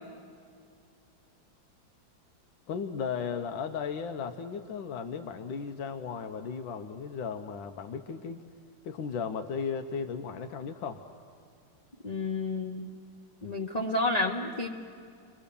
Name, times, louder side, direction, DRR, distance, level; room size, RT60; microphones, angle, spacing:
voice 1, 2.7-8.4 8.8-11.0, left 6 dB, 90° left, 6 dB, 1.6 m, -35 dB
voice 2, 12.0-12.9 13.4-14.7, left 2 dB, 30° left, 1 dB, 0.8 m, -30 dB
29.5 x 22.5 x 6.9 m, 2.4 s
omnidirectional pair, 2.0 m